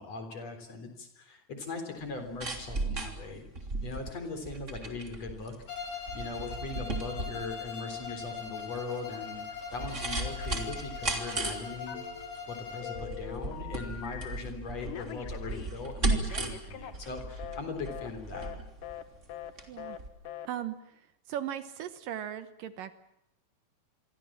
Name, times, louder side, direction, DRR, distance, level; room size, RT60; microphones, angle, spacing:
voice 1, 0.0-3.4 3.8-5.5 5.9-12.0 12.5-18.5, left 3 dB, 45° left, 6 dB, 4.7 m, -40 dB
sound 1, 2.0-19.7 20.0-20.1, right 2 dB, 20° right, 3.0 m, -36 dB
Bowed string instrument, 5.7-13.1, left 6 dB, 80° left, 7.0 m, -41 dB
Telephone, 11.9-12.5 12.8-14.4 14.8-17.6 17.9-18.1 18.3-18.6 18.8-19.0 19.3-19.5 19.8-20.0 20.2-20.5, left 10 dB, 65° left, 3.2 m, -43 dB
voice 2, 19.7-20.0 20.5-21.0 21.3-23.0, right 10 dB, 70° right, 12 dB, 2.6 m, -38 dB
27.0 x 23.5 x 7.5 m, 0.84 s
omnidirectional pair, 4.3 m